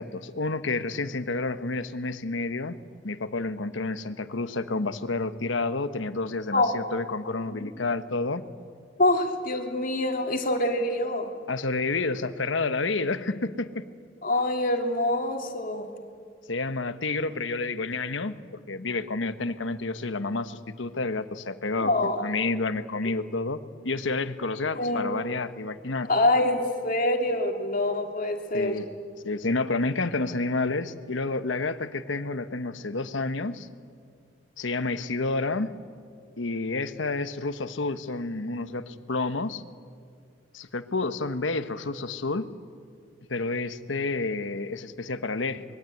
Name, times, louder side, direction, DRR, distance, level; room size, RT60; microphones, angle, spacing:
voice 1, 0.0-2.8 3.0-8.4 11.5-13.8 16.5-18.4 18.7-21.9 22.2-26.1 28.5-28.9 29.2-33.7 34.6-35.7 36.4-39.6 40.5-42.5 43.3-45.6, left 3 dB, 90° left, 11 dB, 1.2 m, -29 dB
voice 2, 9.0-11.3 14.2-15.9 21.8-22.2 24.7-25.1 26.0-28.7, left 1 dB, 45° left, 3 dB, 2.7 m, -25 dB
24.5 x 22.0 x 9.3 m, 2.2 s
head